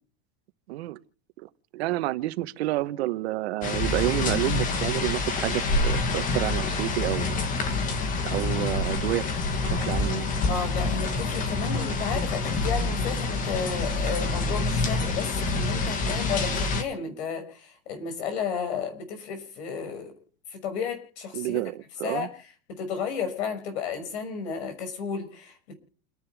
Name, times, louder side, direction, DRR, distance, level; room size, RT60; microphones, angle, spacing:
voice 1, 0.7-1.0 1.7-7.3 8.3-9.3 9.6-10.3 21.3-22.3, right 17 dB, 75° right, 1.2 m, -29 dB
sound 1, 3.6-16.8, left 3 dB, 25° left, 1.7 m, -27 dB
voice 2, 10.5-20.1 20.5-21.6 22.0-22.3 22.7-25.8, left 6 dB, 85° left, 6.2 m, -33 dB
29.5 x 10.5 x 3.5 m
supercardioid pair, 170°, 32 cm